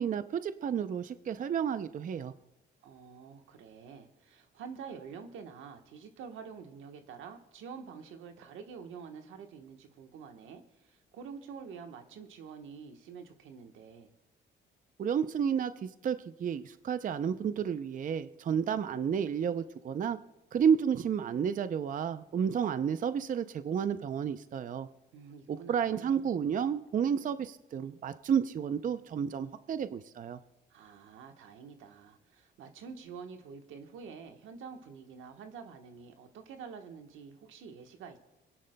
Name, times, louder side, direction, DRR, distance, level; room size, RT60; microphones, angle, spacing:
voice 1, 0.0-2.3 15.0-20.2 20.5-24.9 25.5-30.4, right 7 dB, 40° right, 11 dB, 0.5 m, -31 dB
voice 2, 2.8-14.1 25.1-26.3 30.7-38.2, right 6 dB, 85° right, 5 dB, 1.2 m, -47 dB
28.5 x 10.0 x 2.2 m, 0.94 s
cardioid pair, 90°, 20 cm